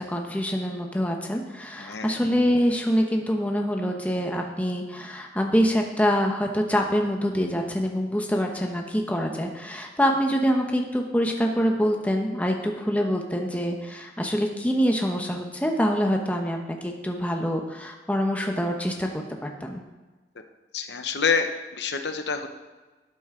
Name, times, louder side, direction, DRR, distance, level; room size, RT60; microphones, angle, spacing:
voice 1, 0.0-19.8, equal, 10° left, 2 dB, 0.9 m, -25 dB
voice 2, 1.8-2.2 20.7-21.5 21.8-22.5, left 5 dB, 85° left, 7 dB, 0.8 m, -26 dB
12.5 x 7.8 x 3.7 m, 1.2 s
head